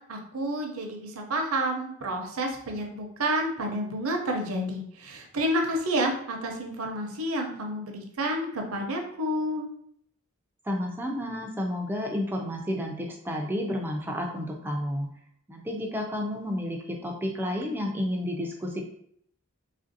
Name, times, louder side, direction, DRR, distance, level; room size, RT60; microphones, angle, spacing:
voice 1, 0.1-9.7, right 1 dB, 75° right, 2 dB, 0.6 m, -30 dB
voice 2, 10.7-15.1 15.5-18.8, left 1 dB, 10° right, 1 dB, 0.3 m, -31 dB
3.2 x 2.5 x 2.6 m, 0.69 s
head